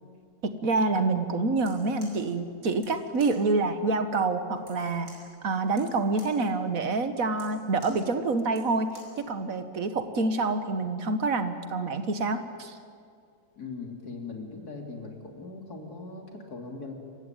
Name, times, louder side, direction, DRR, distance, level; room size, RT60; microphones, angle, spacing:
voice 1, 0.4-5.1 5.4-12.8, right 3 dB, 65° right, 9 dB, 1.7 m, -27 dB
sound 1, 1.5-9.2, right 1 dB, 80° right, 6.2 m, -54 dB
voice 2, 13.5-16.9, left 3 dB, 80° left, 3 dB, 3.4 m, -40 dB
27.5 x 16.0 x 9.1 m, 2.3 s
omnidirectional pair, 1.6 m